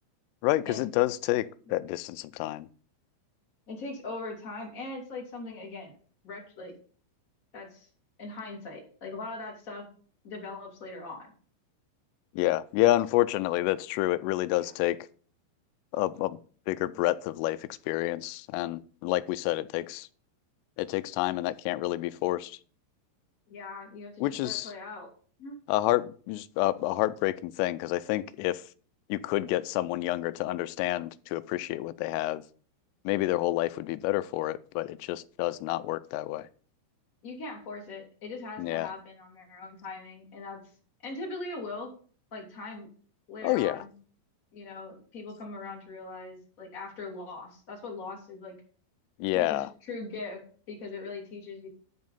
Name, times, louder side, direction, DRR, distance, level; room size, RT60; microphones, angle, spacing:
voice 1, 0.4-2.7 12.4-15.0 15.9-16.4 16.7-20.1 20.8-22.6 24.2-24.7 25.7-28.6 29.1-32.4 33.1-36.5 38.6-38.9 43.4-43.8 49.2-49.7, left 16 dB, 85° left, 3.1 m, -29 dB
voice 2, 3.7-6.0 6.2-6.7 7.5-7.9 8.2-9.8 10.2-11.3 14.6-14.7 23.5-25.1 25.4-25.6 37.2-40.6 41.0-41.9 42.3-42.9 43.3-43.9 44.5-48.6 49.3-50.4 50.7-51.7, left 3 dB, 20° left, 2.6 m, -40 dB
11.5 x 5.2 x 5.5 m
omnidirectional pair, 5.7 m